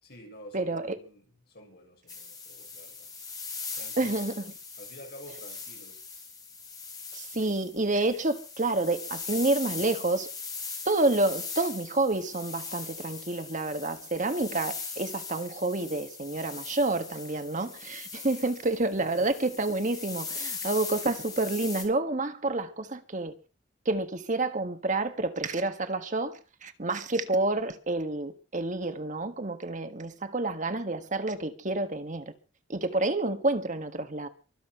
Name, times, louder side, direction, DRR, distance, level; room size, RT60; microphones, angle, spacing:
voice 1, 0.0-3.1 3.7-4.3 4.8-6.0, equal, 55° left, 6.3 m, -49 dB
voice 2, 0.5-1.0 4.0-4.4 7.1-10.3 10.8-23.3 23.8-32.3 32.7-34.3, right 2 dB, 40° right, 1.5 m, -29 dB
sound 1, 2.1-21.8, left 4 dB, 20° left, 4.9 m, -40 dB
23.5 x 8.5 x 5.9 m
head